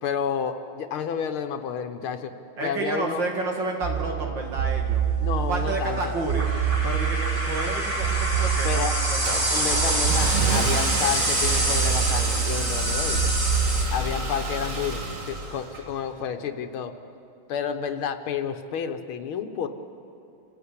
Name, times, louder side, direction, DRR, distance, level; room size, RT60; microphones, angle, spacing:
voice 1, 0.0-2.3 2.6-3.2 5.2-6.1 8.6-9.0 9.3-13.3 13.9-16.9 17.5-19.7, left 7 dB, 90° left, 7 dB, 1.9 m, -30 dB
voice 2, 2.6-5.0 5.5-6.5 6.8-9.5, right 2 dB, 60° right, 1 dB, 2.8 m, -30 dB
sound 1, 3.8-13.8, right 4 dB, 25° right, 2.9 m, -24 dB
Car / Engine starting, 8.0-16.2, right 1 dB, 40° right, 2.0 m, -30 dB
27.5 x 15.5 x 8.4 m, 2.6 s
omnidirectional pair, 2.3 m